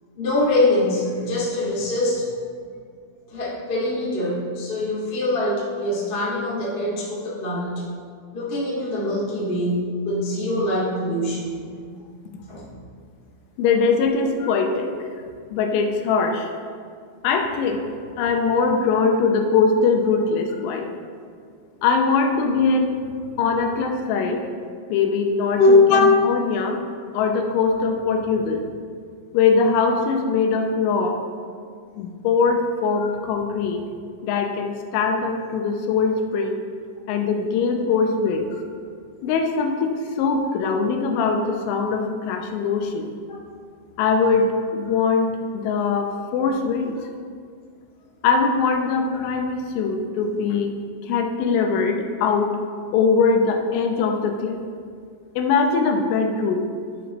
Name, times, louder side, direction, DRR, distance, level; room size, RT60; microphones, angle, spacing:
voice 1, 0.1-2.3 3.3-7.8 8.3-11.6 12.5-12.6 14.4-14.5 25.6-26.0 33.0-33.1, left 2 dB, 65° left, -8 dB, 0.5 m, -22 dB
voice 2, 13.6-14.9 15.5-16.5 17.2-17.8 18.2-20.9 21.8-23.0 23.4-24.4 24.9-26.8 27.1-28.6 29.3-31.2 31.9-33.8 34.2-36.6 37.1-38.4 39.2-43.1 44.0-47.0 48.2-50.7 51.0-52.5 52.9-54.6 55.4-56.7, left 4 dB, 90° left, 4 dB, 3.2 m, -21 dB
12.0 x 5.9 x 3.1 m, 2.1 s
omnidirectional pair, 5.3 m